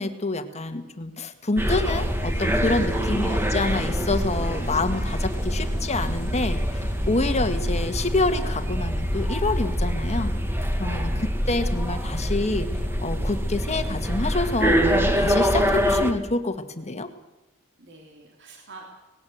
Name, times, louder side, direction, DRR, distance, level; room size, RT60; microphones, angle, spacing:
voice 1, 0.0-10.3 10.8-12.7 13.0-17.1, left 2 dB, 30° left, 8 dB, 1.8 m, -27 dB
sound 1, 1.6-16.1, equal, 10° right, 1.9 m, -25 dB
sound 2, 1.7-10.6, equal, 5° left, 3.6 m, -41 dB
voice 2, 2.7-3.2 10.8-11.2 17.8-18.9, right 3 dB, 60° right, 1 dB, 3.5 m, -45 dB
19.5 x 17.0 x 8.0 m, 1.1 s
head